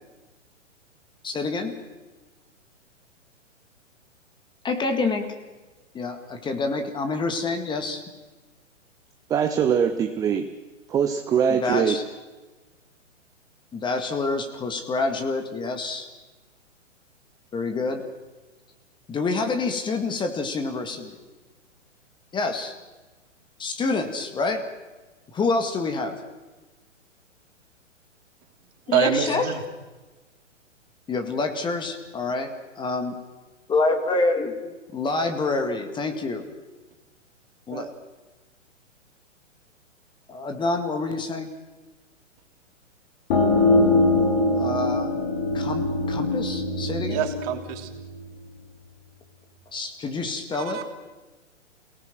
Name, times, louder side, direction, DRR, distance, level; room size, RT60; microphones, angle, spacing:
voice 1, 1.2-1.7 4.6-5.3 5.9-8.0 11.5-12.0 13.7-16.1 17.5-18.1 19.1-21.1 22.3-22.8 23.6-24.7 25.3-26.1 28.9-29.5 31.1-33.1 33.7-36.4 37.7-37.9 40.3-41.5 44.6-45.1 45.5-47.2 49.7-50.8, left 3 dB, 10° left, 6 dB, 2.1 m, -27 dB
voice 2, 9.3-10.5 10.9-12.0 37.7-37.9, right 7 dB, 10° right, 7 dB, 0.6 m, -22 dB
voice 3, 28.9-29.6 47.1-47.9 50.6-50.8, right 9 dB, 30° right, 6 dB, 2.9 m, -25 dB
sound 1, 43.3-48.7, left 2 dB, 40° left, 4.0 m, -23 dB
28.5 x 18.5 x 6.1 m, 1.2 s
figure-of-eight pair, 120°, 37 cm